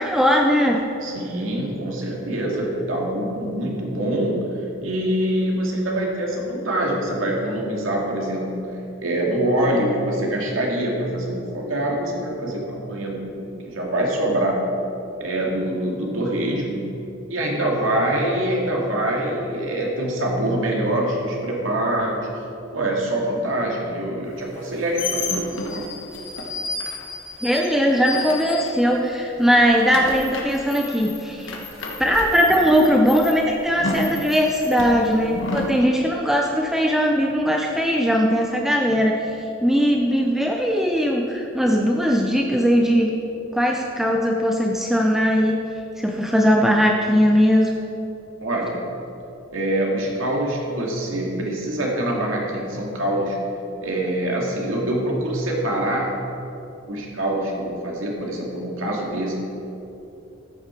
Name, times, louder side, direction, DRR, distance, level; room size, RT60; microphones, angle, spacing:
voice 1, 0.0-0.8 27.4-31.6 32.0-43.1 43.5-45.6 46.0-47.7, equal, ahead, 1 dB, 0.6 m, -19 dB
voice 2, 1.0-14.6 15.2-16.8 17.3-22.4 22.7-25.9 48.4-48.8 49.5-53.4 53.8-56.2 56.9-59.3, right 1 dB, 80° right, -1 dB, 2.3 m, -25 dB
sound 1, 24.5-29.1 29.4-35.8, left 2 dB, 65° left, 1.5 m, -31 dB
14.0 x 9.3 x 4.5 m, 2.9 s
head